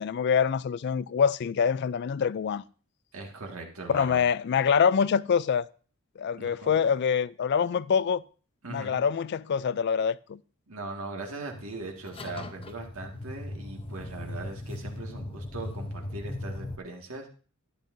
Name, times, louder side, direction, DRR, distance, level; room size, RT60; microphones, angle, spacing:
voice 1, 0.0-2.6 3.9-5.7 6.2-8.2 8.7-10.4, left 7 dB, 50° left, 0.3 m, -25 dB
voice 2, 3.1-4.2 6.4-6.8 8.6-9.0 10.7-17.3, right 2 dB, 75° right, 1.9 m, -40 dB
sound 1, 11.5-16.8, left 1 dB, 25° left, 0.7 m, -38 dB
12.0 x 10.0 x 2.6 m
head